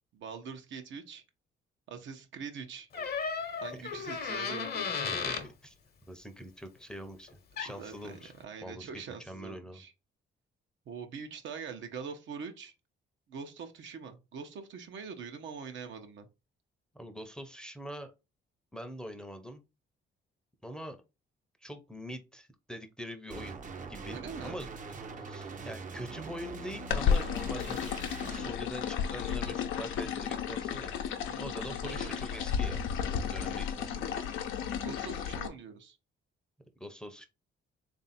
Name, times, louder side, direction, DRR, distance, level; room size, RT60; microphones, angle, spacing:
voice 1, 0.1-1.2 1.9-2.9 3.6-4.9 7.7-9.9 10.9-12.7 13.3-16.3 24.1-24.6 31.3-32.2 34.8-36.0, right 6 dB, 70° right, 0.8 m, -43 dB
Door, 2.9-5.5 7.3-7.4 7.6-7.9, left 5 dB, 50° left, 0.9 m, -34 dB
voice 2, 5.1-5.7 6.1-8.3 8.6-8.9 9.3-9.8 16.9-18.1 18.7-19.6 20.6-21.0 21.6-23.6 23.9-27.9 28.3-30.9 31.4-34.1 36.8-37.2, equal, 5° left, 0.6 m, -44 dB
sound 1, 23.3-28.5, right 4 dB, 40° right, 0.6 m, -43 dB
sound 2, 26.9-35.5, left 7 dB, 90° left, 0.6 m, -33 dB
3.4 x 2.6 x 4.1 m
cardioid pair, 90°, 20 cm